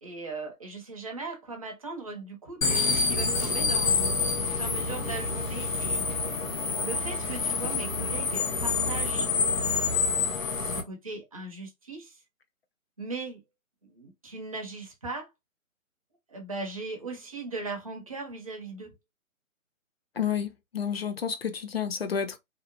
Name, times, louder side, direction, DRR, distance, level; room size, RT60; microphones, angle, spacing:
voice 1, 0.0-6.4 6.8-9.3 9.6-12.2 13.0-13.4 13.8-15.3 16.3-18.9, right 3 dB, 25° right, 0.5 m, -39 dB
sound 1, 2.6-10.8, left 4 dB, 70° left, 0.9 m, -27 dB
voice 2, 20.2-22.4, left 7 dB, 50° left, 0.5 m, -30 dB
2.7 x 2.0 x 2.4 m
figure-of-eight pair, 140°, 41 cm